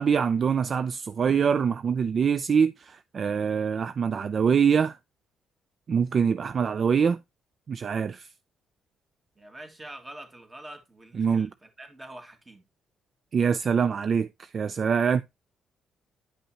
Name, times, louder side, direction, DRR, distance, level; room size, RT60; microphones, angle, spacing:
voice 1, 0.0-5.0 5.9-7.2 7.7-8.3 11.2-11.5 13.3-15.2, right 6 dB, 45° right, 0.3 m, -24 dB
voice 2, 9.4-12.6, right 1 dB, 20° right, 2.0 m, -45 dB
10.0 x 5.4 x 2.9 m
cardioid pair, 90°, 0 cm